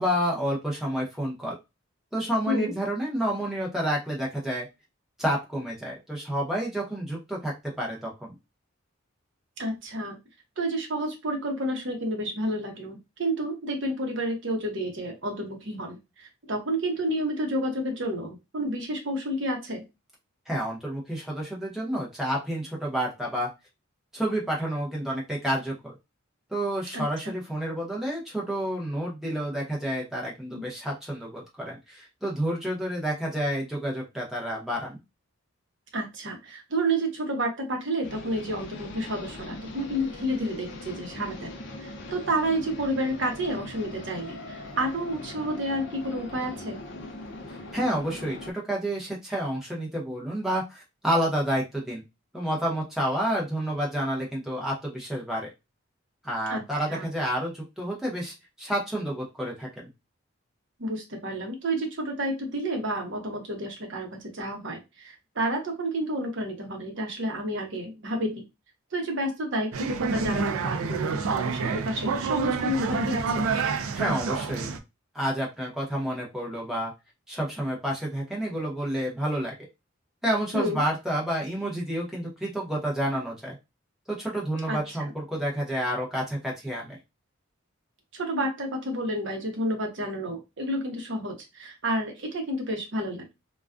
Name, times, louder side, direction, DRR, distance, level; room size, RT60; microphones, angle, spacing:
voice 1, 0.0-1.6 2.1-4.7 5.2-8.4 20.5-23.5 24.1-25.9 26.5-35.0 47.5-52.0 52.3-55.5 56.2-59.9 73.9-74.8 75.1-76.9 77.3-79.5 80.2-83.5 84.1-87.0, right 1 dB, ahead, -3 dB, 0.8 m, -29 dB
voice 2, 9.6-10.2 10.6-19.8 26.9-27.3 30.5-30.6 35.9-41.5 41.8-46.8 56.5-56.6 56.9-57.1 60.8-68.4 68.9-73.5 80.5-80.8 84.7-85.1 88.1-93.3, right 1 dB, 60° right, 2 dB, 0.8 m, -30 dB
sound 1, 38.0-48.5, left 2 dB, 55° left, 0.5 m, -41 dB
sound 2, 69.7-74.8, right 5 dB, 80° right, 0.4 m, -28 dB
2.3 x 2.2 x 2.4 m, 0.23 s
head